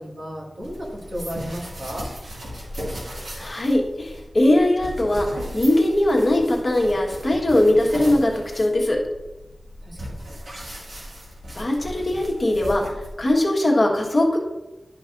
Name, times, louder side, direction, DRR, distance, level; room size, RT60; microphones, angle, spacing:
voice 1, 0.0-2.1 9.8-10.2, equal, 60° right, -3 dB, 2.0 m, -34 dB
sound 1, 0.6-13.4, equal, 85° right, 2.1 m, -37 dB
voice 2, 3.4-5.3 5.5-9.0 11.5-12.8 13.2-14.4, left 1 dB, 40° left, -1 dB, 1.4 m, -20 dB
11.5 x 5.2 x 2.6 m, 1.0 s
wide cardioid pair, 95°, 0 cm